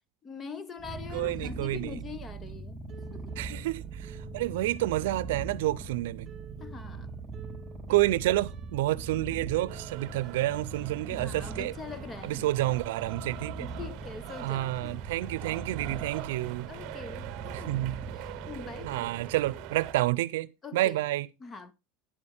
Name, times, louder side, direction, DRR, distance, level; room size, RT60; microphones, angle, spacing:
voice 1, 0.2-2.8 3.1-3.3 6.6-7.1 11.1-12.4 13.6-14.9 16.7-17.8 18.1-19.1 20.6-21.0 21.4-21.7, left 5 dB, 20° left, 0.8 m, -43 dB
Purr, 0.8-20.1, right 3 dB, 10° right, 3.2 m, -41 dB
voice 2, 1.1-2.0 3.4-6.3 7.9-11.7 12.2-13.7 14.4-16.7 17.5-18.0 18.8-21.3, right 16 dB, 90° right, 0.6 m, -29 dB
sound 1, 2.4-17.1 17.4-18.9, right 6 dB, 25° right, 2.9 m, -57 dB
sound 2, 9.7-19.9, right 16 dB, 55° right, 0.8 m, -44 dB
10.5 x 8.6 x 3.5 m
supercardioid pair, 145°, 0 cm